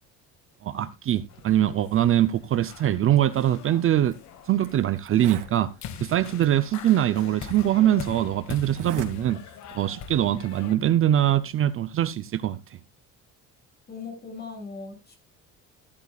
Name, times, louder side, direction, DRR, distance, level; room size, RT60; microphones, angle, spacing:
voice 1, 0.6-4.2 4.5-5.7 6.0-9.4 9.7-12.6, right 12 dB, 40° right, 0.6 m, -23 dB
sound 1, 1.3-10.8, left 8 dB, 60° left, 1.6 m, -42 dB
Zipper (clothing), 4.1-4.2 4.6-4.7 5.0-5.6 6.4-6.5 7.5-7.6 8.6-9.1 9.5-9.8, right 9 dB, 75° right, 2.5 m, -39 dB
voice 2, 13.9-15.2, left 4 dB, 30° left, 7.0 m, -39 dB
14.5 x 12.0 x 2.4 m
cardioid pair, 140°, 32 cm